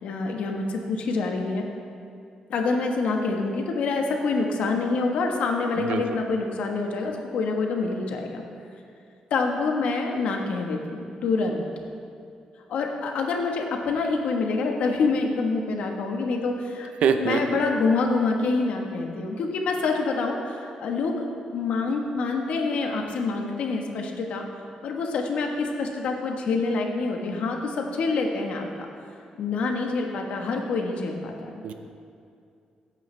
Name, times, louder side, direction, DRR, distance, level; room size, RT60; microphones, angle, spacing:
voice 1, 0.0-1.6 2.5-8.4 9.3-11.6 12.7-16.9 17.2-21.3 21.5-24.5 24.8-28.7 29.4-31.5, left 3 dB, 70° left, 2 dB, 1.4 m, -26 dB
voice 2, 17.0-17.6 31.6-31.7, right 6 dB, 70° right, 8 dB, 0.8 m, -24 dB
16.5 x 9.0 x 3.4 m, 2.5 s
cardioid pair, 150°, 2 cm